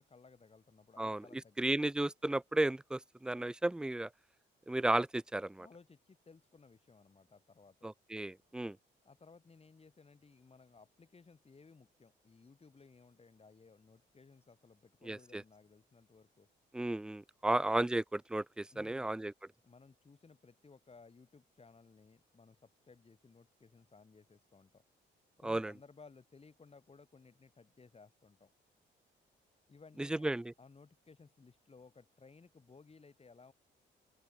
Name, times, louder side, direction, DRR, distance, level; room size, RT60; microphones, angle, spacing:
voice 1, 0.0-1.6 5.6-7.9 9.0-16.5 18.7-19.1 19.6-24.8 25.4-28.5 29.7-30.3 30.6-33.5, left 4 dB, 30° left, 7.7 m, -60 dB
voice 2, 1.6-4.1 4.7-5.7 7.8-8.8 15.1-15.4 16.7-19.3 25.4-25.7 30.0-30.5, right 2 dB, 5° right, 0.3 m, -34 dB
open air
cardioid pair, 90°, 20 cm